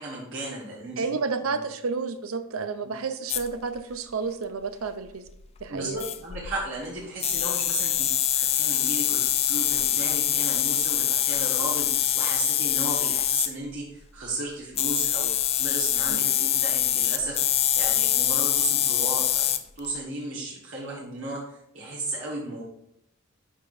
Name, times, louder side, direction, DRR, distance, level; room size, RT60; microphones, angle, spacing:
voice 1, 0.0-1.1 1.4-1.6 2.8-2.9 5.7-15.3 15.6-17.4 17.7-22.6, right 2 dB, 65° right, -5 dB, 1.5 m, -35 dB
voice 2, 1.0-5.2 5.6-6.0 16.1-16.4, right 4 dB, 90° right, 10 dB, 0.6 m, -31 dB
sound 1, 3.3-3.5 5.6-5.7 6.0-6.6 7.2-13.5 14.8-19.9, left 11 dB, 30° left, 0.3 m, -24 dB
9.9 x 4.9 x 2.6 m, 0.76 s
head